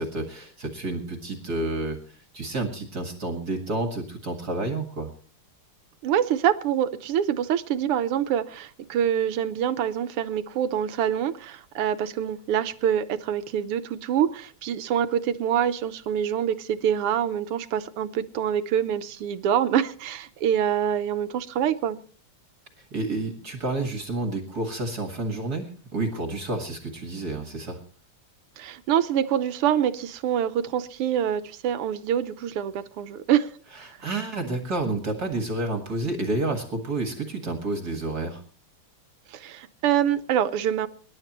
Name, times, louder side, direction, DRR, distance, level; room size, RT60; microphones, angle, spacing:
voice 1, 0.0-5.1 22.8-27.8 33.8-38.4, right 2 dB, 45° right, 4 dB, 2.3 m, -30 dB
voice 2, 6.0-22.0 28.6-33.5 33.8-33.9 39.3-40.9, right 9 dB, 90° right, 11 dB, 1.8 m, -25 dB
26.0 x 11.5 x 3.0 m, 0.41 s
omnidirectional pair, 2.4 m